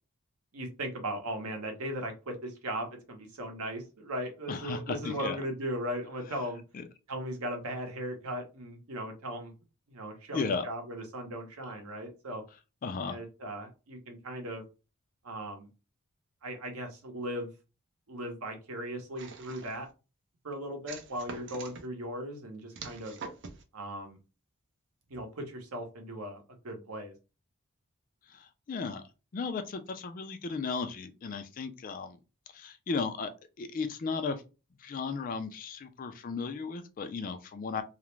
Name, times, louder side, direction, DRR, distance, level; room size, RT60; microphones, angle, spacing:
voice 1, 0.5-6.6 7.1-9.5 9.9-12.4 13.1-14.6 15.2-15.7 16.4-17.5 18.1-19.9 20.4-23.2 23.7-24.2 25.1-27.1, right 1 dB, 90° right, 0.8 m, -38 dB
voice 2, 4.5-5.4 6.7-6.8 10.3-10.7 12.8-13.2 28.3-29.0 29.3-32.2 32.5-33.3 33.6-34.4 34.8-37.8, left 4 dB, 40° left, 0.3 m, -35 dB
sound 1, 19.2-19.9 20.9-21.8 22.7-23.6, right 5 dB, 55° right, 0.5 m, -44 dB
2.4 x 2.0 x 3.0 m
head